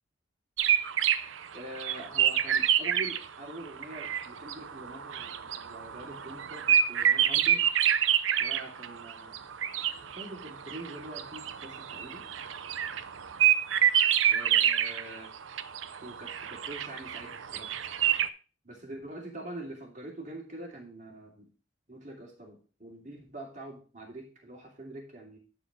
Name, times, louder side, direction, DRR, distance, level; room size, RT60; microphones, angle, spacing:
sound 1, 0.6-3.2 3.5-18.3, right 10 dB, 85° right, 0.6 m, -27 dB
voice 1, 1.5-7.6 8.4-9.4 10.0-12.2 14.3-15.3 16.0-17.7 18.6-21.5 21.9-25.4, right 1 dB, 40° right, -1 dB, 2.7 m, -44 dB
11.0 x 4.6 x 5.0 m, 0.36 s
head